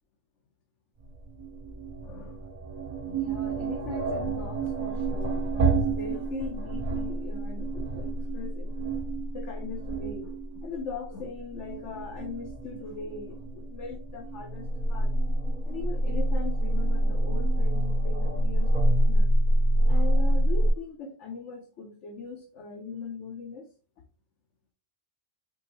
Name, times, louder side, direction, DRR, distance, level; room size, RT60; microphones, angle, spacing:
sound 1, 1.0-20.7, right 1 dB, 40° right, 0.8 m, -27 dB
voice 1, 2.0-2.5 3.0-8.9 9.3-15.1 15.6-19.3 19.9-23.7, left 4 dB, 80° left, 1.2 m, -40 dB
5.1 x 3.1 x 2.9 m
omnidirectional pair, 1.2 m